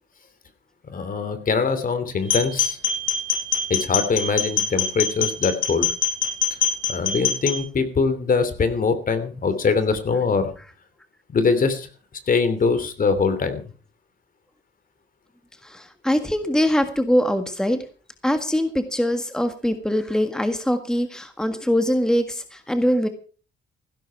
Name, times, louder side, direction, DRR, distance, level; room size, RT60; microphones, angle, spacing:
voice 1, 0.9-2.8 3.7-5.9 6.9-10.5 11.3-11.9 12.3-13.6, left 4 dB, 45° left, 11 dB, 2.9 m, -22 dB
sound 1, 2.2-7.6, left 6 dB, 85° left, 5.6 m, -24 dB
voice 2, 15.6-17.8 18.2-23.1, equal, 5° left, 8 dB, 1.7 m, -22 dB
16.0 x 12.0 x 4.7 m, 0.39 s
cardioid pair, 90°, 20 cm